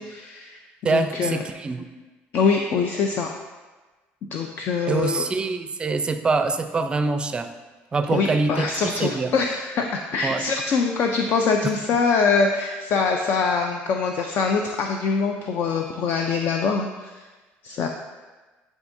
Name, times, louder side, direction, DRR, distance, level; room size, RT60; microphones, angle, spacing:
voice 1, 0.0-1.4 2.3-3.3 4.2-5.3 8.1-17.3 17.6-17.9, left 5 dB, 55° left, 3 dB, 0.4 m, -24 dB
voice 2, 0.8-1.8 4.9-7.5 7.9-8.7 9.0-9.3 10.2-10.4, right 3 dB, 25° right, 8 dB, 0.4 m, -24 dB
10.5 x 3.6 x 2.6 m, 1.3 s
cardioid pair, 115°, 4 cm